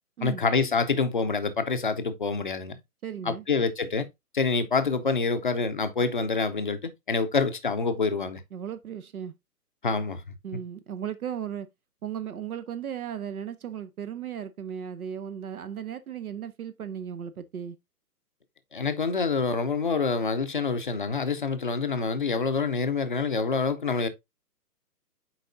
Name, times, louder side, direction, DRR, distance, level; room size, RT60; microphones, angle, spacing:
voice 1, 0.2-2.8 3.2-4.1 4.3-8.4 9.8-10.2 10.5-10.6 18.7-24.1, left 4 dB, 35° left, 0.5 m, -26 dB
voice 2, 3.0-3.4 8.5-9.3 10.4-11.7 12.0-17.8, right 8 dB, 65° right, 0.8 m, -36 dB
8.1 x 4.6 x 2.6 m
hypercardioid pair, 160°, 48 cm